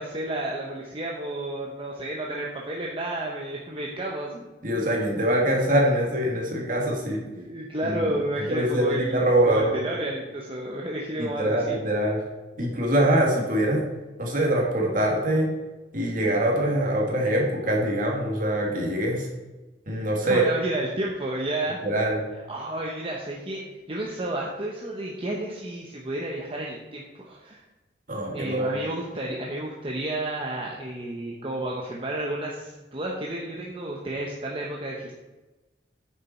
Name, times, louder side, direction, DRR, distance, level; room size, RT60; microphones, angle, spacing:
voice 1, 0.0-4.5 7.3-11.8 20.2-21.8 22.5-27.6 28.3-35.1, right 1 dB, 30° right, -2 dB, 1.1 m, -31 dB
voice 2, 4.6-7.2 7.8-8.2 8.5-9.8 11.2-12.2 12.6-13.8 14.2-15.5 15.9-19.3 19.9-20.4 21.8-22.2 28.1-28.7, right 1 dB, 50° right, -1 dB, 2.5 m, -24 dB
9.4 x 7.2 x 4.5 m, 1.1 s
head